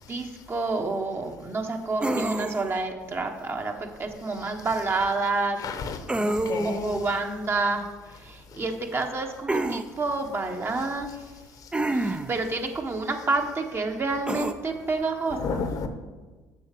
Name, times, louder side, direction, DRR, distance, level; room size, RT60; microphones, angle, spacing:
voice 1, 0.1-5.7 6.1-11.1 11.9-15.6, right 3 dB, 30° right, 4 dB, 1.3 m, -29 dB
sound 1, 2.0-2.8 6.1-6.9 9.5-9.9 11.7-12.4 14.3-14.5, right 2 dB, 15° right, 0.6 m, -27 dB
voice 2, 5.6-6.0 6.3-7.0 10.8-10.9 15.3-15.9, left 5 dB, 55° left, 8 dB, 1.1 m, -31 dB
6.9 x 6.4 x 6.7 m, 1.3 s
hypercardioid pair, 65°, 7 cm